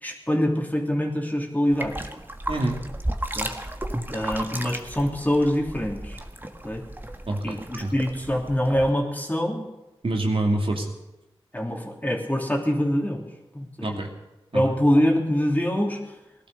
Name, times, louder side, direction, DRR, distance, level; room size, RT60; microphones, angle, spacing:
voice 1, 0.0-1.9 3.3-3.5 4.1-6.2 6.6-6.8 7.4-9.7 11.5-13.2 13.5-14.1 14.5-16.1, equal, 15° left, 0 dB, 3.1 m, -24 dB
sound 1, 1.7-8.9, right 1 dB, 20° right, 1.5 m, -34 dB
voice 2, 2.5-2.8 7.3-8.0 10.0-10.9 13.8-14.1 14.5-14.6, right 2 dB, 65° right, 0 dB, 2.6 m, -26 dB
17.5 x 12.0 x 6.6 m, 0.97 s
cardioid pair, 45°, 10 cm